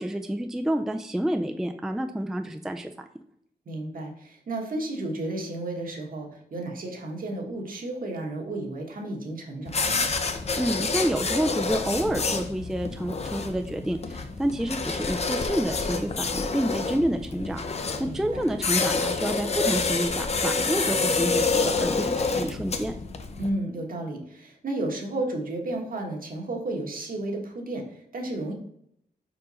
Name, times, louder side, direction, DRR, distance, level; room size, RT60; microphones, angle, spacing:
voice 1, 0.0-2.9 10.6-22.9, right 1 dB, 5° right, 5 dB, 0.3 m, -29 dB
voice 2, 3.6-10.1 18.0-18.5 23.4-28.5, right 2 dB, 60° right, 1 dB, 1.4 m, -33 dB
sound 1, 9.6-23.5, left 4 dB, 40° left, 0.6 m, -28 dB
5.0 x 4.5 x 4.2 m, 0.71 s
wide cardioid pair, 125°, 16 cm